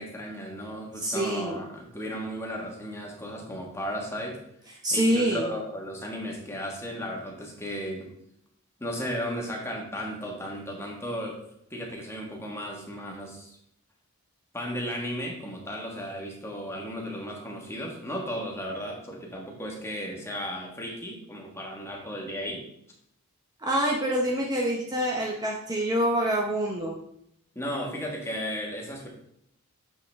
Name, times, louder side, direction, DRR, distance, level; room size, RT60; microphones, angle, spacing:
voice 1, 0.0-4.4 4.9-8.1 8.8-11.4 11.7-13.6 14.5-22.6 27.5-29.1, equal, 10° left, -1 dB, 1.5 m, -35 dB
voice 2, 0.9-1.6 4.8-5.5 23.6-27.0, right 1 dB, 20° right, -1 dB, 0.8 m, -26 dB
7.1 x 5.6 x 3.5 m, 0.74 s
head